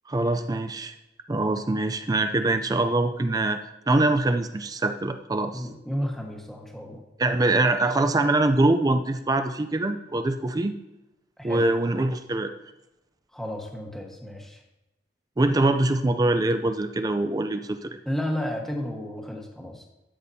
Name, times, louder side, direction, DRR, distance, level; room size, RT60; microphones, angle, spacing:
voice 1, 0.1-0.9 1.3-3.6 3.9-5.6 7.2-10.7 11.4-12.5 15.4-18.0, right 2 dB, 20° right, 8 dB, 0.4 m, -23 dB
voice 2, 5.5-7.0 11.4-11.7 13.3-14.6 18.0-19.9, equal, ahead, 0 dB, 1.2 m, -32 dB
12.5 x 7.0 x 2.7 m, 0.95 s
head